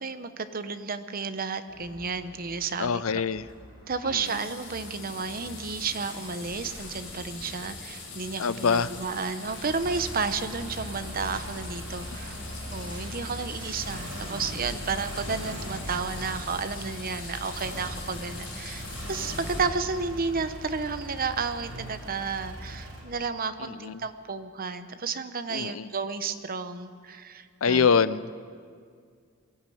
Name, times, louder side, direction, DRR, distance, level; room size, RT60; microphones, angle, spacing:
voice 1, 0.0-3.2 3.9-12.3 12.7-18.8 19.1-27.9, right 4 dB, 45° right, 10 dB, 1.0 m, -32 dB
sound 1, 1.7-14.3, equal, 20° right, 6.9 m, -49 dB
voice 2, 2.8-3.5 4.1-4.2 8.4-8.9 23.8-23.9 25.5-25.9 27.6-28.4, left 6 dB, 75° left, 16 dB, 0.6 m, -24 dB
sound 2, 4.2-19.6, left 4 dB, 55° left, 6.1 m, -43 dB
sound 3, 8.7-23.0, equal, 65° right, 7.5 m, -39 dB
22.0 x 15.5 x 9.3 m, 2.1 s
head